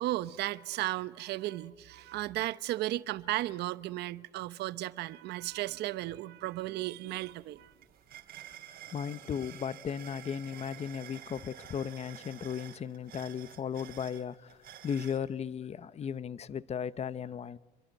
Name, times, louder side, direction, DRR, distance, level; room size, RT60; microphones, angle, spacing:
voice 1, 0.0-7.7, right 16 dB, 80° right, 0.9 m, -35 dB
sound 1, 6.7-6.8 7.1-15.2, right 11 dB, 65° right, 3.2 m, -50 dB
voice 2, 8.9-14.6 14.8-17.6, left 7 dB, 40° left, 0.8 m, -36 dB
27.5 x 23.0 x 9.3 m
cardioid pair, 110°, 17 cm